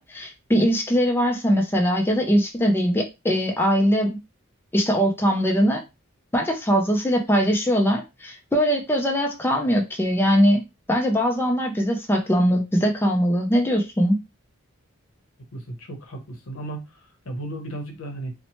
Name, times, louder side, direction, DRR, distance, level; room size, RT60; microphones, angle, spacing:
voice 1, 0.0-4.2 4.7-5.8 6.3-10.6 10.9-14.2, equal, 10° left, 0.4 m, -21 dB
voice 2, 15.5-16.8 17.2-18.3, right 2 dB, 75° left, 0.7 m, -34 dB
2.8 x 2.1 x 2.9 m
head